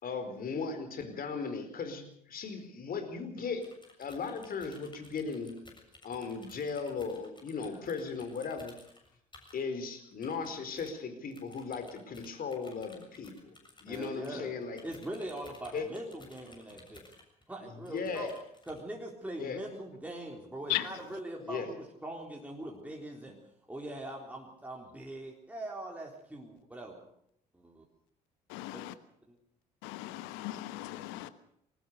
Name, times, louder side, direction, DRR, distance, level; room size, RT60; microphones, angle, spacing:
voice 1, 0.0-2.0 2.3-3.6 4.0-5.5 6.0-8.7 9.5-13.5 13.8-14.8 15.7-15.8 17.6-18.3 19.4-19.6 21.4-21.7, left 5 dB, 45° left, 4.6 m, -37 dB
sound 1, 3.6-9.6 10.1-10.9 11.3-17.5 17.8-18.8, left 2 dB, 25° left, 7.1 m, -56 dB
voice 2, 13.9-14.5 14.8-17.0 17.5-18.3 18.7-23.4 23.7-27.1 27.5-27.8 28.7-28.9 29.3-29.4 30.8-30.9, right 1 dB, 5° right, 3.9 m, -42 dB
voice 3, 28.5-28.9 29.8-31.3, left 17 dB, 70° left, 1.1 m, -36 dB
21.5 x 18.5 x 6.8 m
hypercardioid pair, 55°, 20 cm